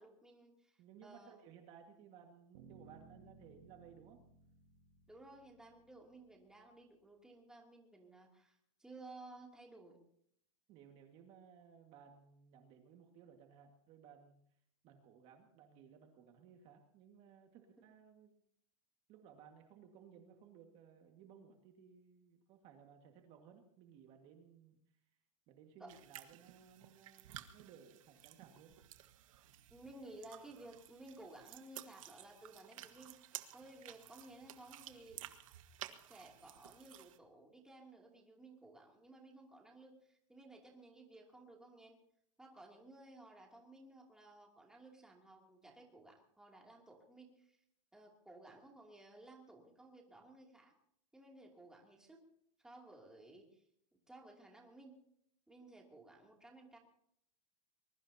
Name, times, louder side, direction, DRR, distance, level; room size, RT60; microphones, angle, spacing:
voice 1, 0.0-1.3 5.1-10.0 25.8-25.9 29.7-35.2 35.5-35.6 36.1-42.0 42.4-47.6 47.9-50.7 51.1-52.2 52.6-53.6 54.1-55.0 55.5-56.8, right 2 dB, 5° right, -1 dB, 2.8 m, -57 dB
voice 2, 0.8-4.2 10.7-14.6 14.8-18.4 19.1-25.0 25.5-28.8, right 7 dB, 40° right, 3 dB, 1.9 m, -60 dB
sound 1, 2.5-6.5, right 4 dB, 65° right, 3.8 m, -62 dB
sound 2, 25.9-37.2, right 13 dB, 85° right, 1.4 m, -54 dB
23.5 x 21.5 x 2.8 m, 0.69 s
supercardioid pair, 160°, 17 cm